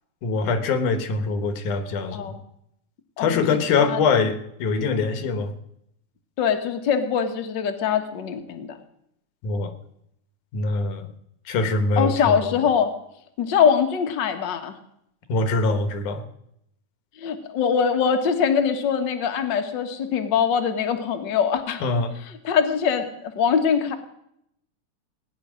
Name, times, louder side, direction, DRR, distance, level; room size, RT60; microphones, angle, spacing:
voice 1, 0.2-2.4 3.2-5.5 9.4-9.8 10.5-11.1 11.5-12.6 15.3-16.2 21.8-22.1, left 4 dB, 75° left, 10 dB, 2.8 m, -23 dB
voice 2, 3.2-4.0 6.4-8.8 12.0-12.9 13.4-14.7 17.2-21.8 22.4-23.1 23.4-23.9, left 7 dB, 50° left, 7 dB, 1.5 m, -23 dB
17.5 x 9.8 x 6.3 m, 0.75 s
omnidirectional pair, 3.6 m